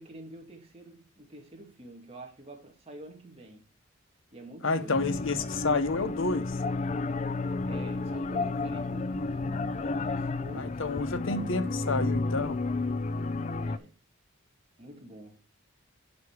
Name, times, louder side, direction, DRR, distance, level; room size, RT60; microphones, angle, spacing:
voice 1, 0.0-3.6 4.3-5.0 7.7-10.8 11.3-11.9 13.6-13.9 14.8-15.4, right 1 dB, 25° right, 1.9 m, -47 dB
voice 2, 4.6-6.6 10.5-12.6, left 3 dB, 60° left, 0.8 m, -30 dB
sound 1, 4.9-13.8, left 3 dB, 30° left, 0.3 m, -31 dB
9.5 x 5.1 x 4.6 m
head